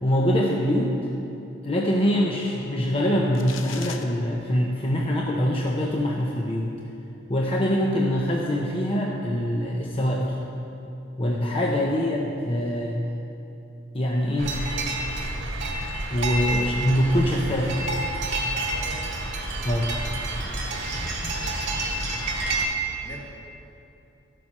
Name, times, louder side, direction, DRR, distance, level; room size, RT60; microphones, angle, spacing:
voice 1, 0.0-1.0 1.6-6.7 7.3-10.4 11.2-13.0 13.9-14.6 16.1-17.8 19.6-19.9, equal, 30° left, -2 dB, 0.8 m, -24 dB
sound 1, 3.4-4.0, left 7 dB, 85° left, 0.7 m, -38 dB
sound 2, 14.4-22.6, right 2 dB, 65° right, 1.8 m, -29 dB
voice 2, 18.4-19.0 21.2-22.1 22.9-23.2, left 1 dB, 60° left, -2 dB, 2.0 m, -46 dB
13.5 x 7.6 x 5.4 m, 2.8 s
head